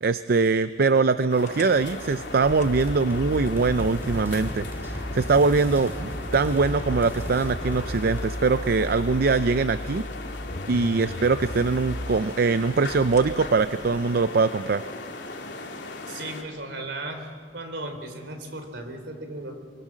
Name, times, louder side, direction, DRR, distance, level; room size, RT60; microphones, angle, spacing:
voice 1, 0.0-10.0 10.7-14.8, right 4 dB, 55° right, 12 dB, 0.5 m, -22 dB
sound 1, 1.3-16.4, left 3 dB, 75° left, 2.8 m, -38 dB
sound 2, 1.4-14.3, left 1 dB, 40° left, 1.0 m, -37 dB
sound 3, 2.6-8.2, equal, 15° right, 2.5 m, -36 dB
voice 2, 16.1-17.3 17.5-19.5, right 2 dB, 75° right, 6 dB, 3.7 m, -36 dB
24.5 x 24.0 x 7.4 m, 2.1 s
head